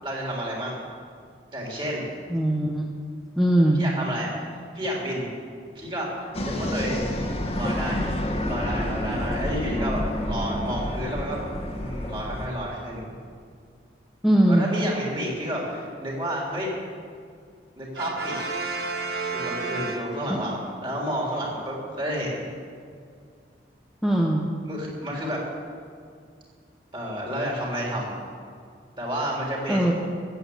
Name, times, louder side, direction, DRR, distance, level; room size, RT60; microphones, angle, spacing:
voice 1, 0.0-0.8 1.5-2.1 3.8-5.3 5.8-7.0 7.5-11.5 11.7-13.1 14.5-16.7 17.8-18.4 19.3-22.5 24.7-25.4 26.9-28.1 29.0-29.9, equal, 25° right, -3 dB, 3.5 m, -30 dB
voice 2, 2.3-2.9 3.4-3.8 9.8-10.8 14.2-14.7 20.3-20.5 24.0-24.5 29.7-29.9, right 1 dB, ahead, -2 dB, 0.9 m, -22 dB
sound 1, 6.3-12.5, left 1 dB, 35° left, 1.4 m, -29 dB
Brass instrument, 18.0-20.6, right 3 dB, 60° right, 1.3 m, -31 dB
14.5 x 8.7 x 7.9 m, 2.2 s
head